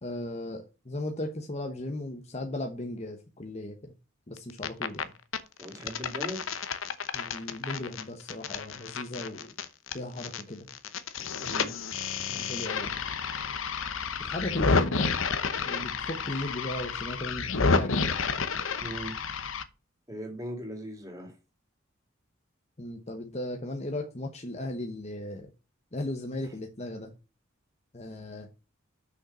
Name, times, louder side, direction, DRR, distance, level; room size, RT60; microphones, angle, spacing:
voice 1, 0.0-3.9 4.3-5.1 7.1-9.5 9.9-10.7 12.3-13.0 14.2-15.1 15.7-18.2 22.8-25.5 25.9-27.1 27.9-28.5, left 1 dB, 30° left, 3 dB, 1.0 m, -36 dB
sound 1, 4.4-5.0 5.3-10.4 10.7-19.6, left 4 dB, 70° left, 0.9 m, -30 dB
voice 2, 5.6-6.4 11.4-11.7 18.8-19.2 20.1-21.4 26.4-26.5, equal, 15° right, 2 dB, 2.7 m, -39 dB
6.5 x 5.6 x 5.5 m, 0.31 s
head